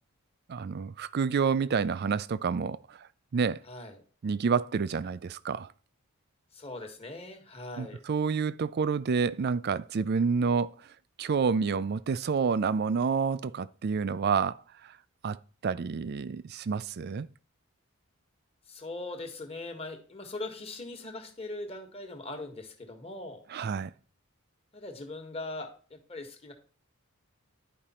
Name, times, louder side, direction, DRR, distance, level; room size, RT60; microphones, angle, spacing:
voice 1, 0.5-3.1 3.3-3.6 4.2-5.7 7.8-10.7 11.2-14.9 15.2-15.4 15.6-17.3 23.5-23.9, right 5 dB, 45° right, 0.4 m, -29 dB
voice 2, 3.7-4.0 6.5-8.0 18.7-23.4 24.7-26.5, left 2 dB, 25° left, 1.4 m, -40 dB
10.5 x 5.1 x 4.3 m
head